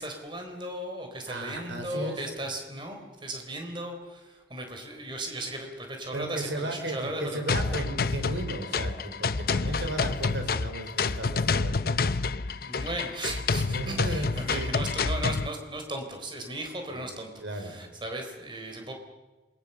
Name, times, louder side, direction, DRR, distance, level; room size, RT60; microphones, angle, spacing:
voice 1, 0.0-7.4 12.6-18.9, right 1 dB, 25° right, 4 dB, 4.0 m, -36 dB
voice 2, 1.2-2.2 6.1-12.0 13.6-14.8 17.4-17.8, right 2 dB, 80° right, 5 dB, 4.5 m, -35 dB
sound 1, 7.5-15.5, left 4 dB, 50° left, 0.7 m, -28 dB
27.5 x 21.5 x 6.9 m, 1.2 s
head